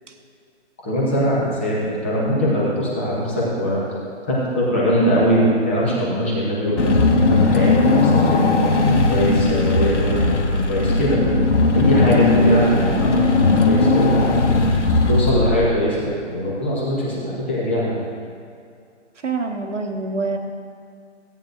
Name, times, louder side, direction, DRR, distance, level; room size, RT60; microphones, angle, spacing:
voice 1, 0.8-3.8 4.3-11.2 11.7-14.1 15.1-18.0, equal, 10° left, -6 dB, 0.8 m, -21 dB
Car / Engine, 6.8-15.9, left 3 dB, 75° left, 1.4 m, -17 dB
voice 2, 19.2-20.4, right 3 dB, 80° right, 3 dB, 1.5 m, -25 dB
16.5 x 9.4 x 2.5 m, 2.3 s
hypercardioid pair, 170°, 36 cm